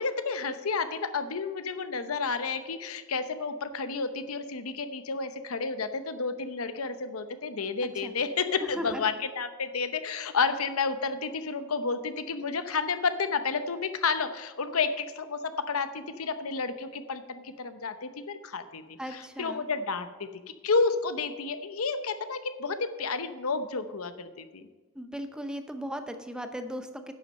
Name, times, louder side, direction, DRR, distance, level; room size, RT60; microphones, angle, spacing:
voice 1, 0.0-20.3 20.6-24.7, left 4 dB, 90° left, 10 dB, 0.8 m, -31 dB
voice 2, 8.6-9.0 19.0-19.6 25.0-27.1, equal, 5° right, 7 dB, 0.6 m, -37 dB
11.0 x 7.5 x 5.3 m, 1.3 s
head